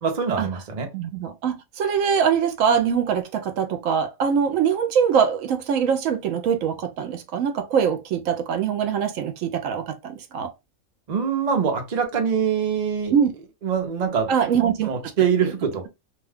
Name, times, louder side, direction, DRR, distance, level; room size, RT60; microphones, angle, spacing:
voice 1, 0.0-0.9 11.1-13.2 13.6-14.3 14.8-15.9, right 7 dB, 40° right, 0.7 m, -24 dB
voice 2, 0.9-10.5 13.1-13.3 14.3-14.9, right 7 dB, 75° right, 1.0 m, -23 dB
2.6 x 2.2 x 3.4 m
omnidirectional pair, 1.4 m